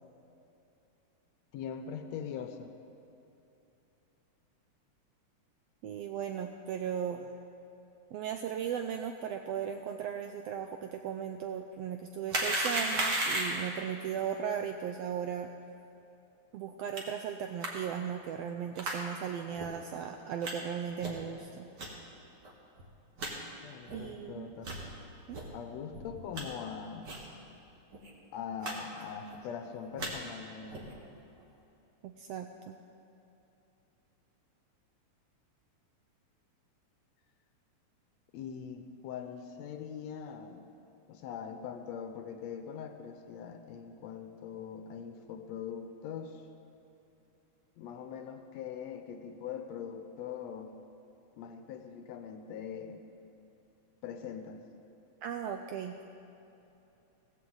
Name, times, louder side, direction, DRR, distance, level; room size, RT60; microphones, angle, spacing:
voice 1, 1.5-2.7 23.6-24.7 25.5-27.2 28.3-30.9 38.3-40.7 41.1-46.4 47.8-50.7 51.4-53.0 54.0-54.6, left 7 dB, 75° left, 7 dB, 1.8 m, -42 dB
voice 2, 5.8-7.3 8.1-15.5 16.5-21.7 23.9-24.5 25.3-25.4 32.0-32.8 55.2-56.0, right 8 dB, 90° right, 6 dB, 1.4 m, -37 dB
sound 1, 12.3-13.7 17.0-17.1 17.6-17.7 18.8-19.0 19.6-19.7 20.4-20.5 21.0-21.3 21.8-21.9 22.4-22.5 22.8-22.9 23.2-23.3 23.9-24.0 24.6-24.8 25.3-25.4 25.9-26.4 27.0-27.3 27.5-27.6 27.9-28.1 28.6-28.7 29.0-29.4 29.8-30.1 30.7-30.9, right 2 dB, 45° right, 1.7 m, -34 dB
16.0 x 15.0 x 3.9 m, 2.9 s
omnidirectional pair, 3.4 m